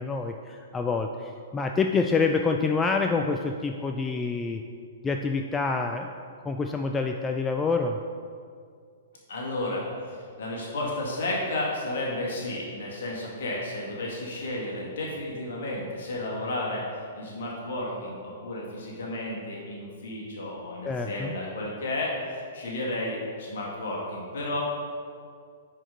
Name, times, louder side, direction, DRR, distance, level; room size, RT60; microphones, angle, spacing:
voice 1, 0.0-4.6 5.0-6.1 6.4-8.0 20.9-21.3, left 4 dB, 15° left, 4 dB, 0.3 m, -27 dB
voice 2, 9.3-24.6, left 1 dB, 55° left, -3 dB, 2.0 m, -32 dB
9.7 x 4.9 x 3.9 m, 2.2 s
figure-of-eight pair, 110°, 0 cm